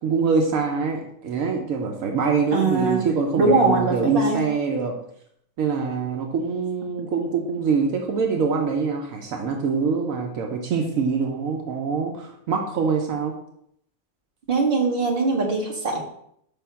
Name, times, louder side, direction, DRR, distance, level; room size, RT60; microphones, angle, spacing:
voice 1, 0.0-4.9 5.6-13.3, right 5 dB, 75° right, 2 dB, 1.1 m, -24 dB
voice 2, 2.5-3.1 3.4-4.4 14.5-16.0, right 3 dB, 40° right, 0 dB, 1.3 m, -21 dB
5.2 x 3.7 x 5.6 m, 0.70 s
omnidirectional pair, 1.5 m